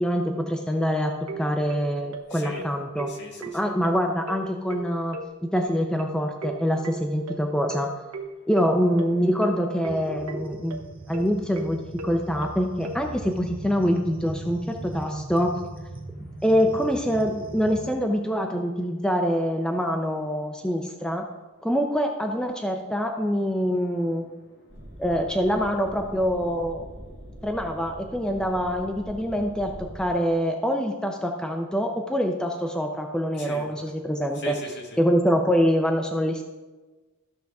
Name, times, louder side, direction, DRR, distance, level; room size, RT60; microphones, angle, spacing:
voice 1, 0.0-3.1 3.5-5.2 5.5-7.9 8.5-15.5 16.2-21.2 21.6-24.2 25.0-26.8 27.4-34.5 35.0-36.4, equal, 5° left, 2 dB, 0.5 m, -25 dB
sound 1, 1.3-13.0, right 2 dB, 70° right, 1.0 m, -37 dB
voice 2, 2.3-2.7 3.1-3.7 8.3-8.5 16.0-16.4 23.8-25.0 33.3-33.7 34.3-35.0, left 2 dB, 50° left, 0 dB, 1.7 m, -41 dB
sound 2, 9.9-17.9, right 1 dB, 25° right, 0.8 m, -39 dB
sound 3, 24.7-30.1, equal, 50° right, 2.0 m, -43 dB
14.0 x 6.2 x 3.5 m, 1.2 s
head